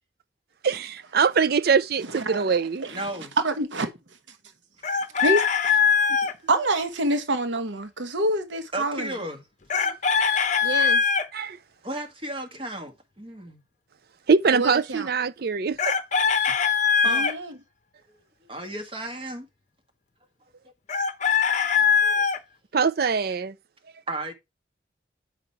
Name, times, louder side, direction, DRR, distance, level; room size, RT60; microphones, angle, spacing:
voice 1, 0.6-2.8 9.8-10.4 10.8-10.9 11.3-11.6 14.3-15.9 22.7-23.5, right 5 dB, 55° right, 0.5 m, -23 dB
voice 2, 2.1-3.0 3.4-3.9 5.2-5.8 6.5-9.1 10.6-11.0 14.5-15.1 17.0-17.5, right 1 dB, 90° right, 1.1 m, -27 dB
voice 3, 2.9-3.3 8.7-9.4 11.8-13.6 17.0-17.3 18.4-19.5 21.5-22.3 24.1-24.3, right 1 dB, 30° right, 1.8 m, -34 dB
Chicken rooster, 4.8-6.3 9.7-11.3 15.8-17.3 20.9-22.4, left 6 dB, 40° left, 0.8 m, -22 dB
7.9 x 5.4 x 4.5 m
head